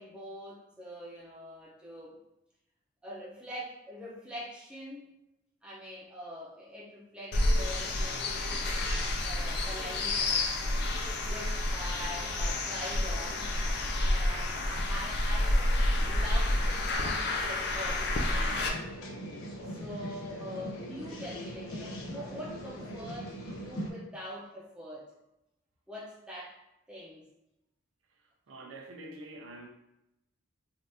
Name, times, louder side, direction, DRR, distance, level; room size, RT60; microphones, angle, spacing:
voice 1, 0.0-2.2 3.0-5.1 5.6-10.8 11.2-13.5 14.0-18.6 19.7-25.1 25.9-26.6 26.9-27.3, equal, 5° right, 0.6 m, -44 dB
sound 1, 7.3-18.7, left 1 dB, 50° left, 0.4 m, -29 dB
sound 2, 18.5-23.9, equal, 90° left, 0.7 m, -40 dB
voice 2, 28.5-29.7, right 1 dB, 80° right, 0.5 m, -45 dB
3.4 x 2.5 x 2.6 m
head